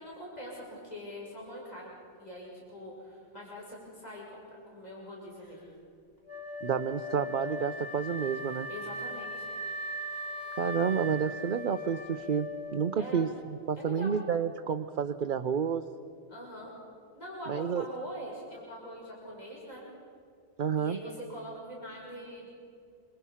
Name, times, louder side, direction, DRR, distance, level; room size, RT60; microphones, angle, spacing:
voice 1, 0.0-5.7 8.7-9.5 13.0-13.3 13.8-14.2 16.3-16.7 17.1-19.8 20.8-22.5, equal, 35° left, -5 dB, 6.6 m, -43 dB
Wind instrument woodwind instrument, 6.3-13.3, left 1 dB, 15° left, 3.1 m, -39 dB
voice 2, 6.6-8.7 10.6-13.3 13.7-15.8 17.5-17.8 20.6-21.0, right 7 dB, 50° right, 9 dB, 0.8 m, -30 dB
26.5 x 26.0 x 5.7 m, 2.5 s
omnidirectional pair, 1.2 m